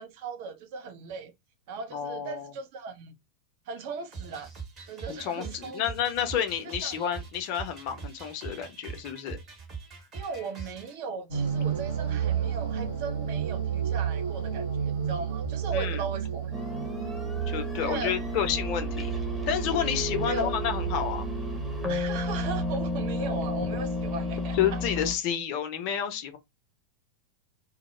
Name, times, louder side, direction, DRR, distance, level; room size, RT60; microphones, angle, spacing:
voice 1, 0.0-1.3 1.7-3.2 3.7-4.5 4.9-5.8 6.8-7.0 10.1-16.6 17.8-18.2 20.3-20.6 21.9-24.8, right 4 dB, 50° right, 0.5 m, -37 dB
voice 2, 1.9-2.5 5.1-9.4 15.7-16.0 17.5-19.1 19.5-21.3 24.5-26.4, left 9 dB, 45° left, 0.5 m, -30 dB
sound 1, 4.1-10.9, right 5 dB, 30° right, 0.8 m, -42 dB
sound 2, 11.3-24.1, right 8 dB, 70° right, 0.8 m, -32 dB
sound 3, 16.5-25.1, left 2 dB, 5° right, 0.7 m, -33 dB
2.0 x 2.0 x 3.0 m
figure-of-eight pair, 90°, 0 cm